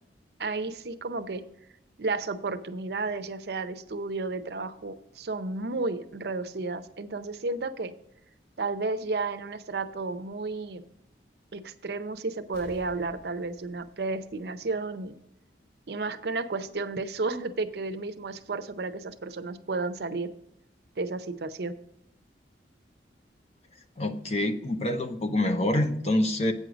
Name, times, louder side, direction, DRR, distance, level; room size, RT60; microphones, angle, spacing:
voice 1, 0.4-1.4 2.0-7.9 8.6-10.8 11.5-15.1 15.9-20.3 21.0-21.7, right 3 dB, 65° right, 11 dB, 0.6 m, -32 dB
Explosion, 12.5-15.1 15.5-15.6, equal, 70° left, 3.8 m, -54 dB
voice 2, 24.0-26.5, left 1 dB, 35° left, 8 dB, 0.7 m, -26 dB
8.5 x 6.4 x 5.0 m, 0.79 s
head